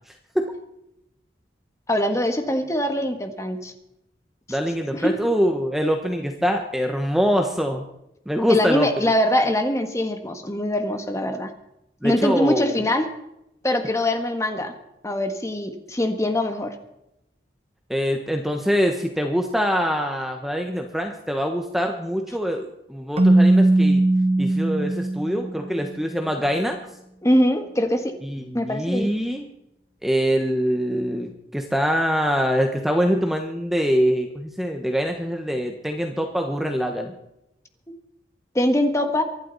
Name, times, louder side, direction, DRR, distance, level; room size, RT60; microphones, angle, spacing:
voice 1, 1.9-3.7 4.5-4.6 4.9-5.1 8.5-11.5 12.0-13.1 13.6-14.7 15.0-16.7 27.2-28.1 28.5-29.1 38.5-39.2, left 1 dB, 15° left, 6 dB, 1.4 m, -22 dB
voice 2, 4.5-7.9 8.3-8.9 12.0-12.8 17.9-24.0 24.4-26.8 28.2-29.5 30.0-37.1, equal, ahead, 3 dB, 1.1 m, -24 dB
Keyboard (musical), 23.2-25.9, right 2 dB, 35° right, 1.5 m, -19 dB
24.0 x 11.5 x 4.1 m, 0.83 s
head